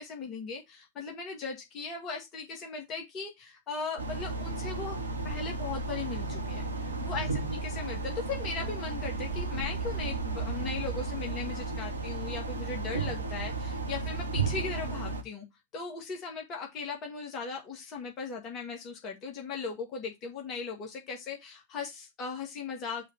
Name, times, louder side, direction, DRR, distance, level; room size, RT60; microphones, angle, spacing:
voice 1, 0.0-5.0 5.2-6.7 7.0-15.5 15.7-23.1, left 4 dB, 35° left, 1 dB, 2.0 m, -38 dB
sound 1, 4.0-15.2, right 3 dB, 80° right, 1.0 m, -34 dB
6.1 x 3.5 x 5.7 m, 0.20 s
figure-of-eight pair, 90°, 0 cm